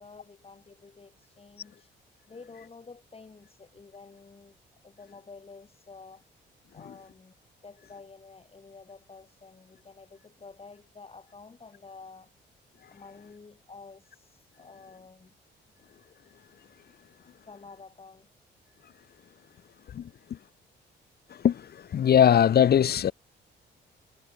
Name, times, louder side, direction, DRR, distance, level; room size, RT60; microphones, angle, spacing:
voice 1, 0.0-1.9 2.3-4.6 4.8-6.2 6.7-7.4 7.6-12.3 12.9-15.3 17.4-18.3, left 4 dB, 30° left, 7.8 m, -50 dB
voice 2, 21.9-23.1, left 9 dB, 55° left, 1.1 m, -19 dB
cardioid pair, 90°, 20 cm